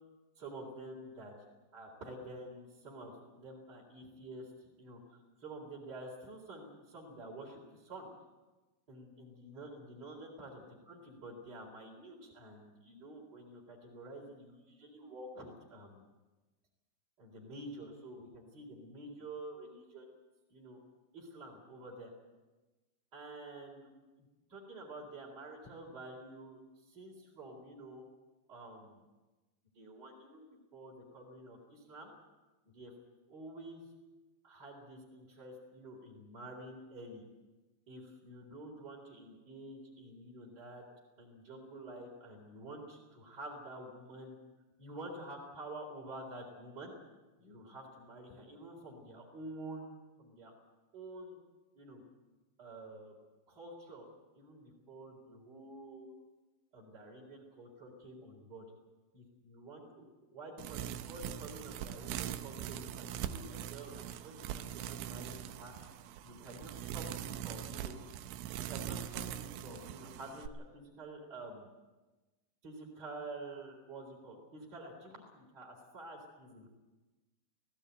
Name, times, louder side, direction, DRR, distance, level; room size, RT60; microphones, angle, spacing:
voice 1, 0.4-1.3 1.7-8.1 8.9-16.1 17.2-20.1 20.5-20.8 21.1-22.1 23.1-23.9 24.2-28.0 28.5-29.0 29.7-32.1 32.7-32.9 33.3-33.9 34.4-37.2 37.9-40.8 41.2-44.4 44.8-46.9 47.4-49.9 50.2-50.5 50.9-51.4 51.7-52.0 52.6-53.1 53.5-54.1 54.3-56.1 56.7-58.7 59.1-65.7 66.2-68.0 68.5-71.7 72.6-76.7, right 2 dB, 25° right, -7 dB, 4.0 m, -49 dB
sound 1, 60.6-70.5, right 11 dB, 80° right, 3.2 m, -42 dB
17.0 x 17.0 x 9.3 m, 1.2 s
omnidirectional pair, 5.4 m